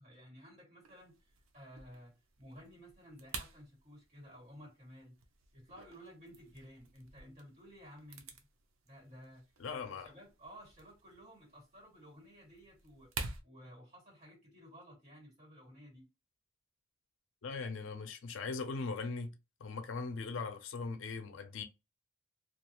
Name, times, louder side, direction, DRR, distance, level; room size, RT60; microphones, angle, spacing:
voice 1, 0.0-2.1 2.4-5.1 5.5-8.4 8.8-9.5 9.7-13.1 13.4-16.1, equal, 35° right, 1.7 m, -55 dB
sound 1, 0.8-13.4, right 4 dB, 80° right, 0.5 m, -50 dB
voice 2, 9.6-10.1 17.4-19.3 19.6-21.6, left 4 dB, 70° left, 0.5 m, -40 dB
2.3 x 2.3 x 2.9 m
head